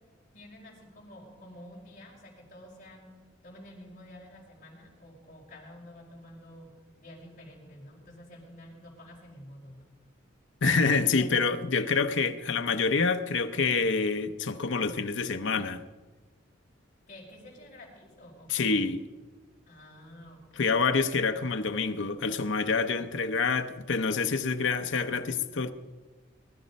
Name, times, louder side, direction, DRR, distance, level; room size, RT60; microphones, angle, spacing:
voice 1, 0.3-3.2 3.4-6.7 7.0-9.8 11.2-11.4 17.1-18.8 19.7-20.7, left 1 dB, 40° left, 4.5 m, -49 dB
voice 2, 10.6-15.8 18.5-19.0 20.6-25.7, left 4 dB, 70° left, 0.7 m, -27 dB
20.5 x 12.0 x 5.3 m
head